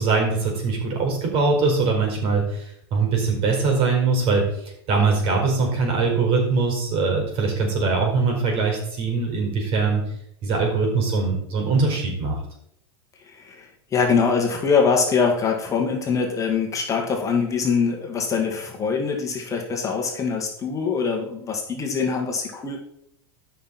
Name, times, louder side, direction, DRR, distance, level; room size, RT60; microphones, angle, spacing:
voice 1, 0.0-10.0 10.4-12.4, right 4 dB, 45° right, 1 dB, 4.7 m, -22 dB
voice 2, 13.3-22.8, left 5 dB, 25° left, 2 dB, 1.6 m, -23 dB
13.5 x 5.9 x 4.2 m, 0.72 s
supercardioid pair, 125°, 14 cm